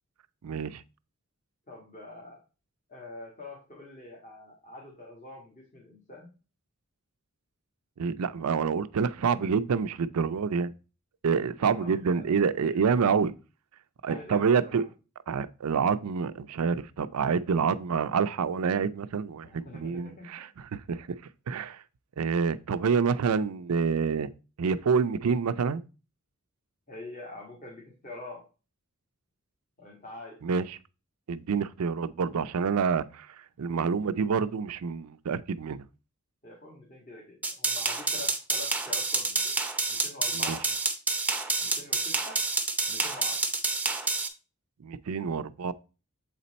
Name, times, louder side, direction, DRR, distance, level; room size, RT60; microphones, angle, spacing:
voice 1, 0.4-0.8 8.0-10.7 11.2-13.3 14.0-14.8 15.3-19.5 19.7-21.1 21.5-21.8 22.2-24.3 24.6-25.8 30.4-30.8 31.3-33.3 33.6-35.8 40.3-40.6 44.8-45.7, right 6 dB, 90° right, 0.4 m, -27 dB
voice 2, 1.7-2.4 2.9-6.3 11.5-12.8 14.1-14.9 19.4-20.5 26.9-28.5 29.8-30.4 36.4-39.5 39.9-40.6 41.6-42.4 42.9-43.4, left 2 dB, 35° left, 1.6 m, -45 dB
sound 1, 37.4-44.3, right 3 dB, 5° right, 0.6 m, -28 dB
7.4 x 4.2 x 4.0 m
head